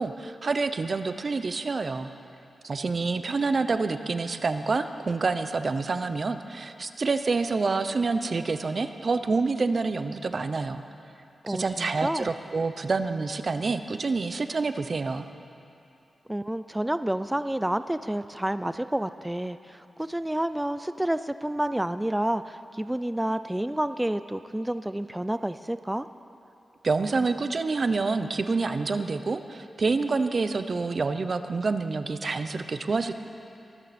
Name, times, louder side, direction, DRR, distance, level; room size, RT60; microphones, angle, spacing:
voice 1, 0.0-2.1 2.6-10.8 11.5-15.3 26.8-33.1, right 4 dB, 45° right, 9 dB, 0.7 m, -27 dB
voice 2, 11.4-12.3 16.3-26.1, right 1 dB, 10° right, 12 dB, 0.3 m, -29 dB
22.5 x 13.0 x 4.3 m, 2.7 s
wide cardioid pair, 120°, 0 cm